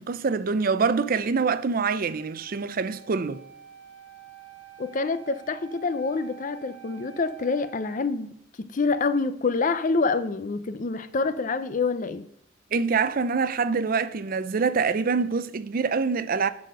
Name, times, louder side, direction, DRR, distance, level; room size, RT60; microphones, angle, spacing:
voice 1, 0.0-3.4 12.7-16.5, right 5 dB, 45° right, 0.5 m, -25 dB
Wind instrument woodwind instrument, 2.1-8.1, right 11 dB, 65° right, 1.5 m, -48 dB
voice 2, 4.8-8.3 8.6-12.3, left 4 dB, 40° left, 0.5 m, -26 dB
11.0 x 4.2 x 6.5 m
head